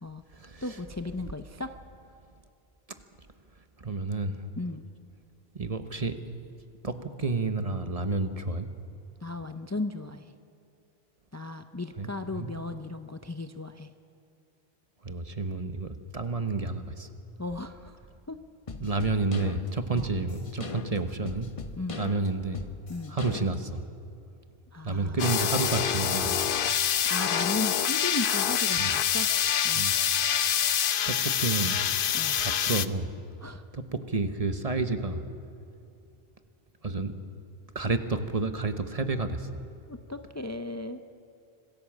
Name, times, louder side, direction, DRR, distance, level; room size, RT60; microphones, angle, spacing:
voice 1, 0.6-1.7 4.6-4.8 9.2-10.3 11.3-13.9 17.4-18.0 18.3-18.4 19.9-20.1 21.8-22.0 22.9-23.2 24.7-25.3 27.1-29.3 29.6-29.9 32.1-32.4 33.4-33.6 39.9-41.0, left 2 dB, 20° left, 8 dB, 0.6 m, -36 dB
voice 2, 3.8-4.4 5.5-6.2 6.8-8.7 12.0-12.6 15.0-17.1 18.8-21.5 22.0-22.6 23.1-23.8 24.8-26.4 28.8-28.9 29.7-30.0 31.1-31.8 32.4-33.1 33.7-35.2 36.8-37.1 37.7-39.5, right 3 dB, 40° right, 9 dB, 1.1 m, -30 dB
sound 1, 18.7-23.8, left 4 dB, 35° left, 0.9 m, -40 dB
sound 2, 25.2-32.9, left 9 dB, 60° left, 0.8 m, -26 dB
26.0 x 16.0 x 7.4 m, 2.6 s
omnidirectional pair, 1.0 m